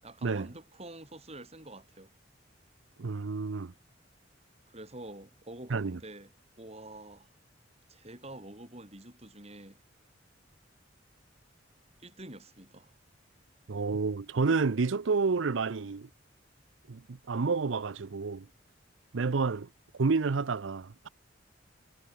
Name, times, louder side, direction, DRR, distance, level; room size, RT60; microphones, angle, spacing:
voice 1, 0.0-2.1 4.7-6.3 6.6-7.3 7.9-9.8 12.0-12.9, right 1 dB, 35° right, 7.6 m, -47 dB
voice 2, 3.0-3.7 5.7-6.0 13.7-16.1 16.9-18.5 19.1-19.7 20.0-21.1, right 4 dB, 85° right, 0.6 m, -29 dB
head